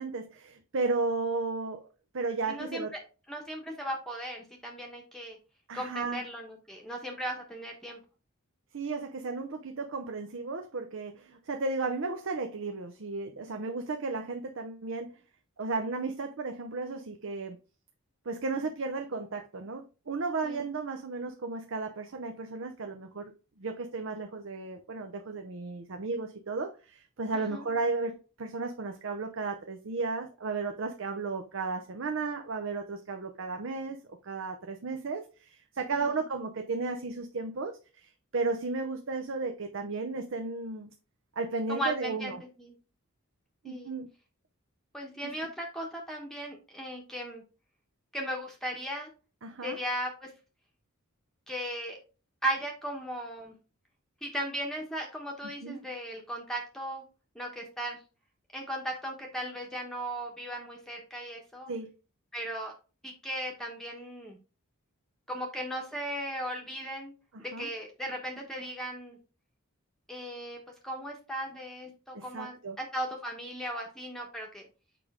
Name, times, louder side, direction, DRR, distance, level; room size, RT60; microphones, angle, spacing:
voice 1, 0.0-1.9 2.1-2.9 5.7-6.2 8.7-15.1 15.6-17.6 18.3-23.3 23.6-34.0 34.2-40.9 41.4-42.4 43.6-44.1 45.2-45.3 49.4-49.8 55.6-55.8 61.7-61.9 67.3-67.7 72.1-72.8, right 3 dB, 60° right, 0.7 m, -34 dB
voice 2, 2.5-3.0 3.3-5.4 5.7-8.0 20.4-20.7 27.3-27.6 35.9-36.2 41.7-42.8 43.6-44.0 44.9-47.4 48.1-49.1 49.6-50.3 51.5-52.0 52.4-53.5 54.2-57.0 57.3-58.0 58.5-61.7 62.3-62.7 63.0-64.4 65.3-67.1 67.4-69.2 70.1-70.6 70.8-74.7, right 1 dB, ahead, 1.0 m, -37 dB
6.7 x 5.0 x 3.6 m
head